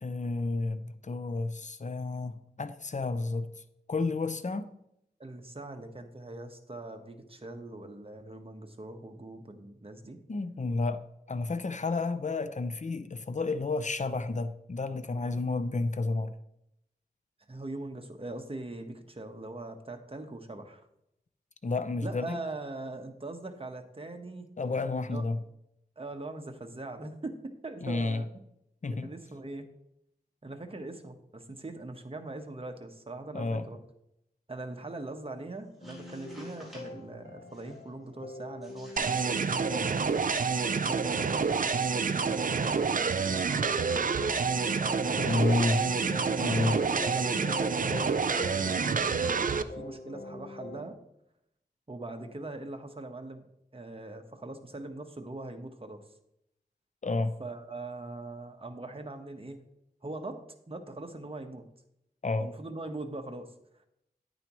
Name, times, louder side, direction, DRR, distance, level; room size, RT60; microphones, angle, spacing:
voice 1, 0.0-3.5 3.9-4.7 10.3-16.3 21.6-22.4 24.6-25.4 27.8-28.2 28.8-29.1 33.3-33.7 45.2-45.8 46.4-46.9 57.0-57.3 62.2-62.5, left 3 dB, 45° left, 11 dB, 0.7 m, -31 dB
voice 2, 5.2-10.2 17.5-20.9 22.0-24.5 25.1-25.2 26.0-28.3 29.0-29.7 30.4-33.8 34.5-44.1 44.8-45.7 46.4-51.0 51.9-53.4 53.7-56.0 57.4-59.6 60.0-61.7 62.4-63.5, right 2 dB, 35° right, 5 dB, 1.2 m, -41 dB
sound 1, 35.6-37.0 37.5-37.9 38.6-39.9 40.2-40.6, equal, ahead, 4.2 m, -54 dB
sound 2, 35.8-50.9, left 2 dB, 60° left, 1.7 m, -44 dB
sound 3, 39.0-49.6, right 5 dB, 55° right, 0.5 m, -28 dB
10.0 x 9.3 x 3.1 m, 0.79 s
wide cardioid pair, 65°, 17 cm